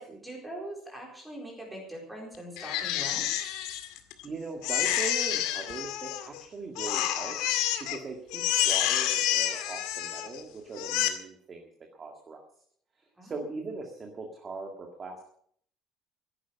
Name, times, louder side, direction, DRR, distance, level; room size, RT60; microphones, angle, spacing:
voice 1, 0.0-3.2 13.2-13.4, right 1 dB, 5° right, -1 dB, 4.3 m, -42 dB
Crying sobbing, 2.6-4.2 4.6-6.4 6.8-8.0 8.3-10.4 10.7-11.1, left 12 dB, 85° left, 2.0 m, -29 dB
voice 2, 4.2-12.4 12.9-15.3, right 3 dB, 20° right, 3 dB, 2.0 m, -40 dB
16.0 x 11.0 x 7.0 m, 0.62 s
cardioid pair, 175°, 0 cm